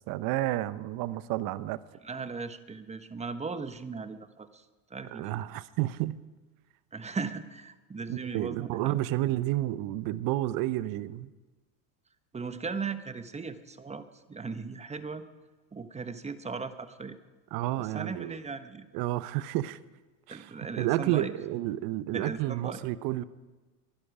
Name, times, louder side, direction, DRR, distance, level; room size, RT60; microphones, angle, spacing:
voice 1, 0.1-1.8 5.1-6.2 8.1-11.3 17.5-18.4 18.9-19.8 20.3-23.2, right 15 dB, 55° right, 0.9 m, -30 dB
voice 2, 2.0-4.6 4.9-5.4 6.9-9.0 12.3-15.3 15.7-17.2 17.8-18.8 20.3-21.3 22.1-22.8, right 4 dB, 15° right, 1.2 m, -38 dB
23.5 x 11.5 x 4.9 m
hypercardioid pair, 95°, 42 cm